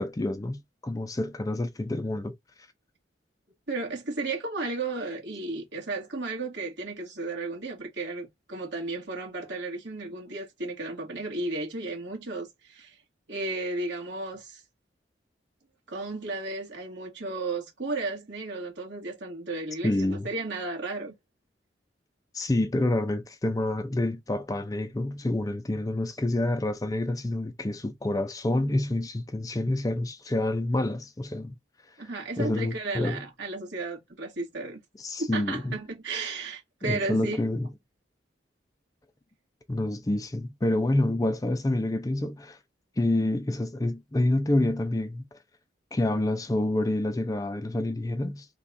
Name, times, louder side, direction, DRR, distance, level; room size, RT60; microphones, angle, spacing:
voice 1, 0.0-2.3 19.8-20.3 22.3-31.5 32.4-33.2 35.0-35.8 36.8-37.7 39.7-42.6 43.0-45.3 45.9-48.5, left 1 dB, 20° left, 0.4 m, -28 dB
voice 2, 3.7-12.9 13.3-14.6 15.9-21.2 32.0-34.8 35.2-37.4, right 3 dB, 75° right, 1.8 m, -34 dB
3.3 x 2.3 x 4.1 m
head